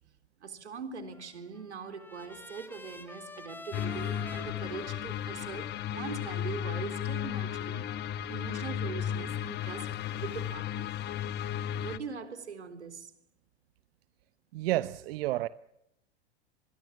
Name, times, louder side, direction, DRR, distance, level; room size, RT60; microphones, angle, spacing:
voice 1, 0.4-7.9 8.3-10.9 11.8-13.1, right 5 dB, 85° right, 3.8 m, -42 dB
Trumpet, 1.1-7.3, left 2 dB, 5° left, 3.2 m, -50 dB
sound 1, 3.7-12.0, left 10 dB, 30° left, 1.1 m, -34 dB
voice 2, 14.5-15.5, right 16 dB, 60° right, 0.9 m, -30 dB
25.5 x 21.5 x 7.2 m
hypercardioid pair, 100°, 33 cm